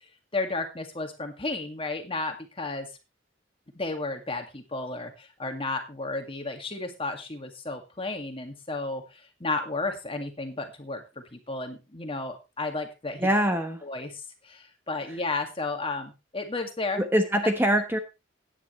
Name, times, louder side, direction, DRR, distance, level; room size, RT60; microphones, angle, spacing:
voice 1, 0.3-2.9 3.7-13.3 13.8-17.0 17.4-17.5, left 3 dB, 30° left, 5 dB, 2.0 m, -33 dB
voice 2, 13.2-13.8 17.0-18.0, equal, 10° right, 6 dB, 1.1 m, -23 dB
15.0 x 9.8 x 3.1 m, 0.27 s
head